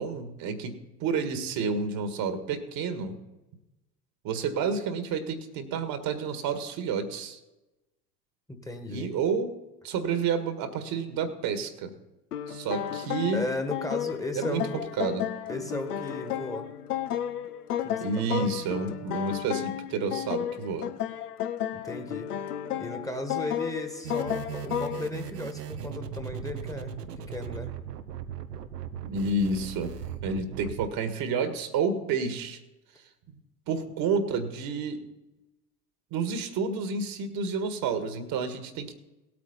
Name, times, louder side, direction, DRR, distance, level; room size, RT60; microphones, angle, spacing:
voice 1, 0.0-3.2 4.2-7.4 8.9-9.5 9.8-11.9 12.5-13.4 14.4-15.3 18.0-20.9 29.0-29.9 30.2-32.6 33.7-35.1 36.1-38.9, right 4 dB, 45° right, 9 dB, 1.8 m, -30 dB
voice 2, 8.5-9.1 13.3-14.9 15.5-16.7 17.8-18.5 21.7-22.3 22.8-27.8, left 2 dB, 5° left, 6 dB, 1.6 m, -36 dB
sound 1, 12.3-25.1, left 10 dB, 70° left, 1.0 m, -33 dB
sound 2, 24.0-30.9, right 8 dB, 80° right, 1.0 m, -38 dB
18.5 x 8.6 x 4.2 m, 1.0 s
figure-of-eight pair, 75°, 47 cm